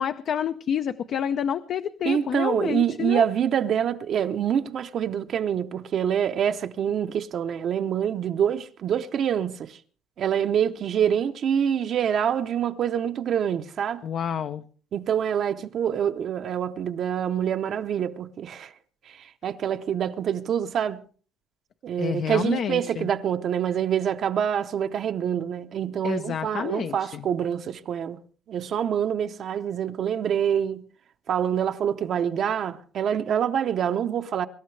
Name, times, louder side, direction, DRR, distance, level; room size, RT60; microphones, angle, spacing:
voice 1, 0.0-3.3 14.0-14.6 22.0-23.1 26.0-27.2, left 8 dB, 45° left, 0.6 m, -28 dB
voice 2, 2.0-9.8 10.2-14.0 14.9-18.7 19.0-21.0 21.8-28.2 28.5-30.8 31.3-34.5, right 9 dB, 45° right, 0.7 m, -26 dB
24.0 x 13.0 x 3.3 m
cardioid pair, 175°, 0 cm